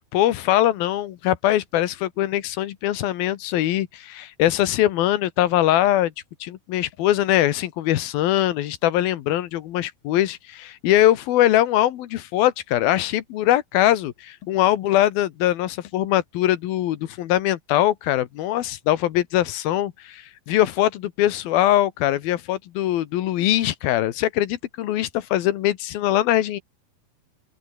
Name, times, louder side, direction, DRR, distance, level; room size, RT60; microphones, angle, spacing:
voice 1, 0.1-6.1 6.4-26.6, left 13 dB, 90° left, 3.2 m, -22 dB
open air
omnidirectional pair, 4.1 m